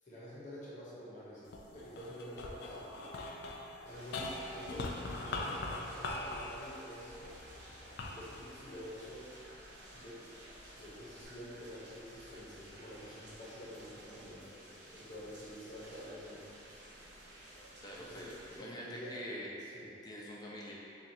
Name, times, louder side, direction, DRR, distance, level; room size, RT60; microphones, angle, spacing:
voice 1, 0.0-3.0 3.8-5.0 5.2-7.4 8.0-9.3 9.9-10.3 10.8-14.5 14.9-16.4 18.0-18.3 18.6-19.2 19.7-19.9, equal, 45° left, -8 dB, 0.9 m, -48 dB
sound 1, 1.4-9.9 10.5-11.2, left 2 dB, 65° left, 0.4 m, -43 dB
sound 2, 3.8-18.6, right 1 dB, 65° right, 1.0 m, -54 dB
voice 2, 17.8-19.5 20.0-20.7, equal, 20° left, -5 dB, 0.6 m, -45 dB
7.1 x 2.5 x 2.7 m, 2.6 s
head